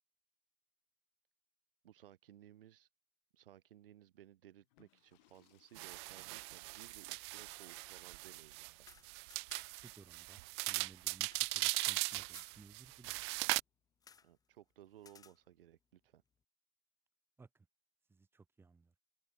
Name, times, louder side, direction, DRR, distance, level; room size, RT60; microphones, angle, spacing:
voice 1, 1.8-2.9 3.3-8.9 14.2-16.2, right 12 dB, 70° right, 2.2 m, -60 dB
sound 1, 4.6-11.3 12.6-14.0, left 20 dB, 50° left, 4.6 m, -75 dB
sound 2, 5.8-13.6, right 27 dB, 30° right, 0.4 m, -39 dB
sound 3, 8.7-9.9 10.2-10.3 10.6-12.6 14.0-14.3 15.0-15.4, left 6 dB, 10° left, 1.3 m, -62 dB
voice 2, 9.7-13.2 17.4-17.7 18.1-18.9, right 4 dB, 10° right, 1.8 m, -60 dB
hypercardioid pair, 135°, 29 cm